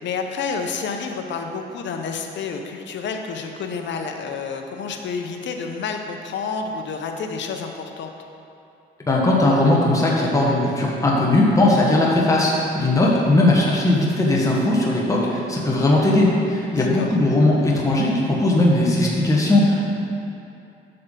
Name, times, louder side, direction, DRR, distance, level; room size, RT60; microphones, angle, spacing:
voice 1, 0.0-8.1 16.7-17.2, left 5 dB, 65° left, 4 dB, 0.8 m, -29 dB
voice 2, 9.1-19.9, left 1 dB, 15° left, -4 dB, 1.3 m, -18 dB
7.7 x 6.8 x 3.8 m, 2.6 s
cardioid pair, 90°, 20 cm